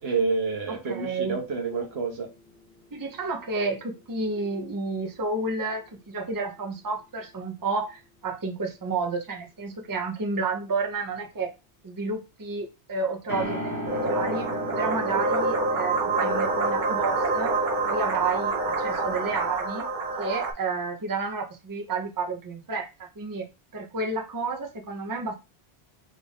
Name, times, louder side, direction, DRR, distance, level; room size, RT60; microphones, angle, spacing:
voice 1, 0.0-2.3, right 4 dB, 80° right, 1.3 m, -28 dB
voice 2, 0.7-1.4 2.9-11.5 11.8-13.6 13.9-14.5 14.8-17.6 17.8-19.9 20.2-23.5 23.7-25.3, right 3 dB, 25° right, 0.6 m, -31 dB
sound 1, 1.0-4.8 5.1-5.2 13.3-19.5, equal, 80° left, 1.5 m, -38 dB
sound 2, 13.9-20.5, right 3 dB, 50° right, 0.9 m, -27 dB
3.9 x 2.5 x 3.5 m
omnidirectional pair, 1.1 m